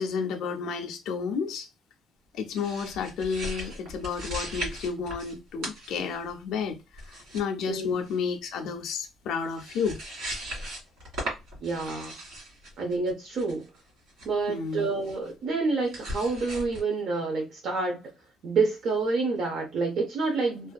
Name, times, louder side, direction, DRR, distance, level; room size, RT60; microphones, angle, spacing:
voice 1, 0.0-1.7 2.3-10.0 14.5-14.9, left 5 dB, 70° left, 0.4 m, -31 dB
sound 1, 2.5-5.4 5.6-6.3 6.9-7.4 7.7-8.2 9.2-9.3 9.5-14.3 15.0-15.3 15.8-16.8, equal, 80° right, 1.5 m, -38 dB
voice 2, 11.6-12.2 12.8-13.6 14.2-18.0 18.4-20.7, right 3 dB, 55° right, 0.5 m, -28 dB
2.5 x 2.3 x 2.2 m
cardioid pair, 160°, 0 cm